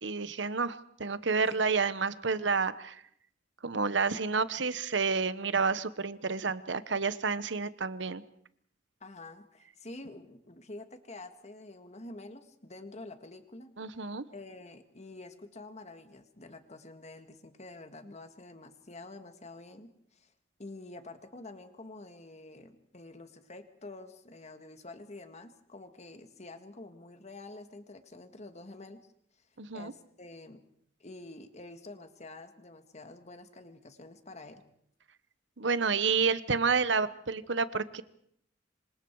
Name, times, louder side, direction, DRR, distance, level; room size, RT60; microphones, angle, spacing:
voice 1, 0.0-3.0 3.6-8.2 13.8-14.2 29.6-29.9 35.6-38.0, right 5 dB, 70° right, 14 dB, 1.1 m, -30 dB
voice 2, 9.0-14.1 14.3-20.3 20.6-29.0 29.7-30.6 31.0-34.6, left 2 dB, 35° left, 8 dB, 2.0 m, -48 dB
27.0 x 25.0 x 4.8 m, 0.68 s
head